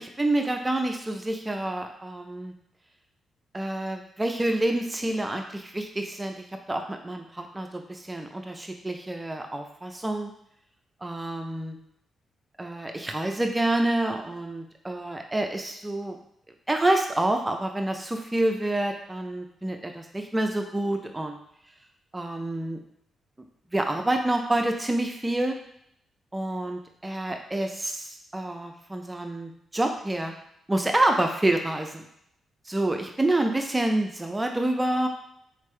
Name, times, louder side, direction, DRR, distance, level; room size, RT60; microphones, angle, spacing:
voice 1, 0.0-2.5 3.5-10.3 11.0-11.8 12.6-16.2 16.7-21.4 22.1-22.8 23.7-25.6 26.3-30.3 30.7-32.0 32.7-35.1, right 1 dB, 20° right, 4 dB, 0.6 m, -28 dB
4.3 x 3.3 x 3.3 m, 0.72 s
supercardioid pair, 50°, 0 cm